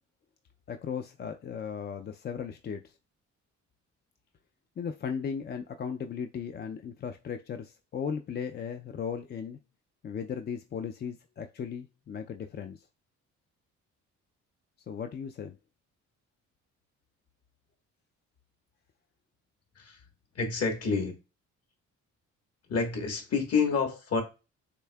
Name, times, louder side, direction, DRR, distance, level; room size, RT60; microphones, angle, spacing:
voice 1, 0.7-2.9 4.8-9.6 10.0-12.9 14.9-15.6, left 7 dB, 35° left, 0.4 m, -36 dB
voice 2, 20.3-21.1 22.7-24.2, left 5 dB, 55° left, 1.4 m, -28 dB
6.7 x 2.7 x 2.3 m
cardioid pair, 90°, 30 cm